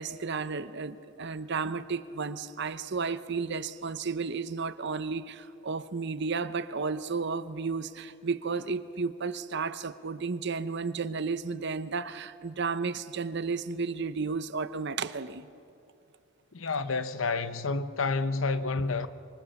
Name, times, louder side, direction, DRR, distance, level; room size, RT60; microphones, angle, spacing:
voice 1, 0.0-15.5, right 4 dB, 55° right, 0.8 m, -33 dB
voice 2, 16.5-19.1, left 3 dB, 70° left, 0.9 m, -29 dB
25.0 x 24.5 x 7.1 m
head